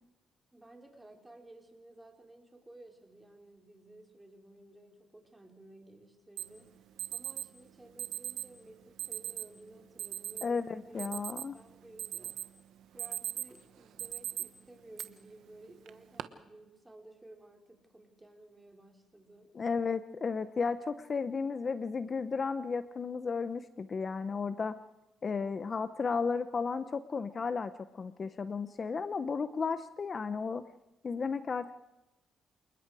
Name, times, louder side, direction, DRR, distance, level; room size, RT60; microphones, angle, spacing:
voice 1, 0.5-6.8 7.1-11.1 11.5-12.4 12.9-19.6, right 2 dB, 10° right, 3 dB, 4.4 m, -55 dB
Alarm, 6.4-6.5 7.0-7.5 8.0-8.5 9.0-9.5 10.0-10.4 10.8-11.6 12.0-12.5 12.8-13.6 14.0-14.4 15.0-15.1 15.9-16.2, right 11 dB, 75° right, 1.2 m, -38 dB
voice 2, 10.4-11.6 19.5-24.8 25.2-30.6 31.0-31.7, left 5 dB, 40° left, 12 dB, 0.9 m, -34 dB
28.0 x 20.0 x 4.9 m, 0.97 s
cardioid pair, 90°, 0 cm